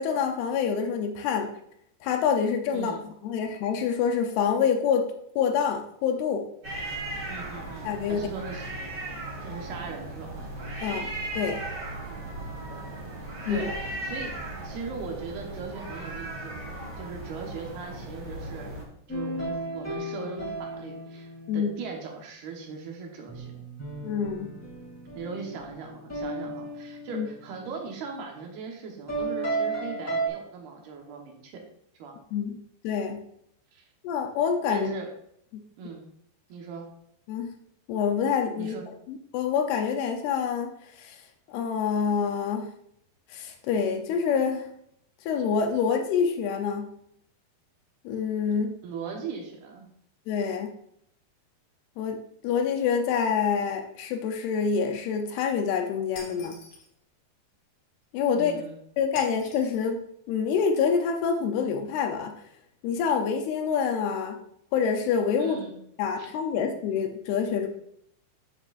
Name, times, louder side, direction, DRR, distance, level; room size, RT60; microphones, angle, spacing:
voice 1, 0.0-1.5 2.0-2.9 3.2-6.5 7.8-8.3 10.8-11.6 13.5-13.7 21.5-21.7 24.0-24.5 27.1-27.3 32.3-32.6 32.8-33.2 34.0-34.9 37.3-37.5 37.9-38.7 39.1-41.2 41.5-42.7 43.3-44.7 45.2-46.9 48.0-48.7 50.3-50.7 52.0-56.6 58.1-58.6 59.0-60.0 60.3-62.3 62.8-64.4 64.7-65.7 66.0-67.7, left 6 dB, 80° left, 4 dB, 2.6 m, -26 dB
sound 1, 6.6-18.8, right 2 dB, 30° right, 1.8 m, -37 dB
voice 2, 7.2-8.6 9.4-10.5 12.1-12.3 12.7-13.1 13.5-14.3 14.6-18.7 19.1-23.7 25.1-31.6 32.0-32.2 33.7-33.8 34.7-35.1 35.8-36.1 36.5-36.9 38.6-38.9 48.8-49.9 58.3-58.8 65.4-65.8 66.2-66.3, right 5 dB, 70° right, 1 dB, 3.0 m, -39 dB
sound 2, 19.1-21.9 23.3-27.8 29.1-30.3, right 2 dB, 5° left, 1.1 m, -34 dB
Shatter, 56.2-56.9 59.2-59.9, left 3 dB, 60° left, 2.8 m, -45 dB
9.8 x 7.9 x 2.5 m, 0.71 s
omnidirectional pair, 4.8 m